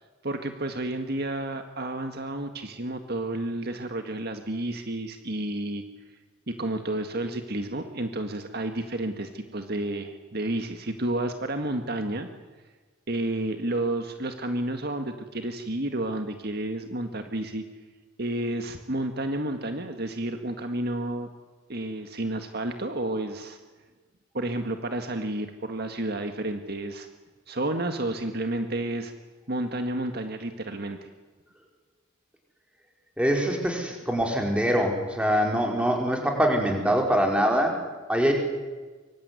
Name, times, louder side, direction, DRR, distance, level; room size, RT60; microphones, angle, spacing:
voice 1, 0.2-5.8 6.5-12.3 13.1-17.6 18.2-21.3 21.7-23.6 24.3-27.1 27.5-29.1 29.5-31.1, right 1 dB, 50° right, 6 dB, 1.9 m, -31 dB
voice 2, 33.2-38.3, equal, 5° right, 1 dB, 5.0 m, -24 dB
24.5 x 24.5 x 9.8 m, 1.3 s
head